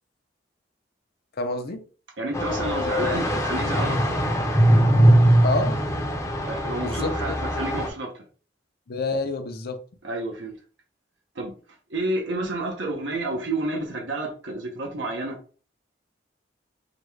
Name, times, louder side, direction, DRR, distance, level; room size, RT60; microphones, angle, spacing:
voice 1, 1.4-1.8 5.4-5.8 6.8-7.4 8.9-9.8, left 2 dB, 55° left, 0.7 m, -28 dB
voice 2, 2.2-4.1 6.4-8.1 10.0-10.6 11.3-11.5 11.9-15.4, right 2 dB, 75° right, 1.0 m, -30 dB
sound 1, 2.3-7.9, equal, 15° left, 0.7 m, -21 dB
4.9 x 2.4 x 3.2 m
head